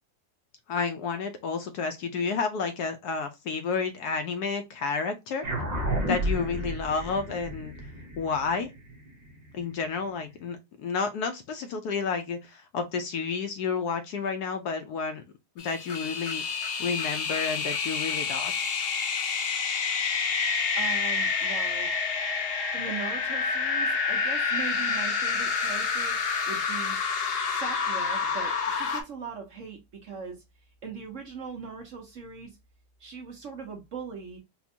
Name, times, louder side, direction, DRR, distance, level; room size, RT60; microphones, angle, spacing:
voice 1, 0.7-5.5 6.1-7.8 8.2-8.7 9.5-15.2 15.6-16.4 16.8-18.5, left 5 dB, 70° left, 1.0 m, -30 dB
sound 1, 5.4-10.2, right 1 dB, 75° right, 0.3 m, -32 dB
sound 2, 15.6-29.0, left 5 dB, 90° left, 0.5 m, -28 dB
voice 2, 20.8-21.9 22.7-26.2 26.5-27.0 27.4-30.4 30.8-32.6 33.0-34.4, right 5 dB, 55° right, 1.0 m, -40 dB
4.2 x 2.2 x 2.7 m
omnidirectional pair, 1.9 m